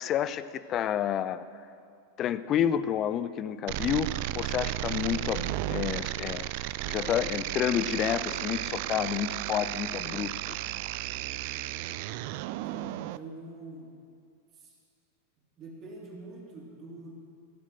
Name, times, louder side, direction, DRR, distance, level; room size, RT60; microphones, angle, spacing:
voice 1, 0.0-1.5 2.2-6.5 6.9-10.6, left 10 dB, 30° left, 15 dB, 0.5 m, -30 dB
sound 1, 3.7-13.2, right 16 dB, 45° right, 0.3 m, -34 dB
voice 2, 12.6-13.9 14.6-14.7 15.6-17.1, right 2 dB, 30° right, -3 dB, 3.3 m, -45 dB
15.5 x 7.3 x 7.7 m, 2.4 s
figure-of-eight pair, 90°, 0 cm